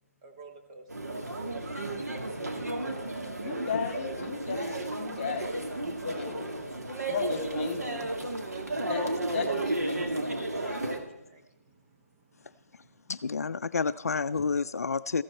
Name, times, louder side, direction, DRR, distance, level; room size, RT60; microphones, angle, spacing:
voice 1, 0.2-1.6 11.2-13.1, right 3 dB, 25° right, 3 dB, 1.1 m, -54 dB
sound 1, 0.9-11.0, right 2 dB, 85° right, 2.3 m, -33 dB
voice 2, 3.4-6.6 7.1-8.1 8.8-10.3 14.3-14.4, left 5 dB, 30° left, 5 dB, 2.6 m, -35 dB
voice 3, 13.1-15.2, left 5 dB, 75° left, 13 dB, 0.4 m, -29 dB
14.5 x 12.5 x 4.3 m, 0.93 s
figure-of-eight pair, 155°, 8 cm